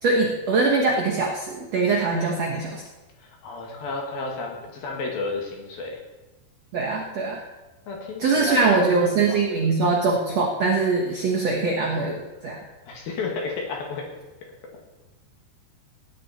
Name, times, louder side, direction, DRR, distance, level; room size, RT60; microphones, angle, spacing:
voice 1, 0.0-2.8 6.7-7.4 8.2-12.6, right 3 dB, 65° right, -2 dB, 1.6 m, -22 dB
voice 2, 3.2-6.0 7.9-9.6 12.9-14.1, left 3 dB, 60° left, 1 dB, 3.3 m, -32 dB
17.0 x 10.0 x 4.3 m, 1.1 s
omnidirectional pair, 5.1 m